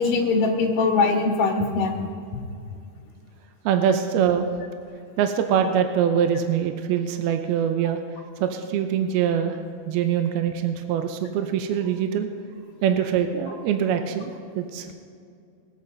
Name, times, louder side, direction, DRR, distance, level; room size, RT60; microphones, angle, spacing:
voice 1, 0.0-2.1, left 4 dB, 60° left, -1 dB, 2.9 m, -21 dB
voice 2, 3.7-4.5 5.2-8.0 8.4-9.6 9.9-12.3 12.8-14.9, right 8 dB, 80° right, 6 dB, 2.6 m, -23 dB
22.0 x 8.6 x 3.9 m, 2.5 s
omnidirectional pair, 4.7 m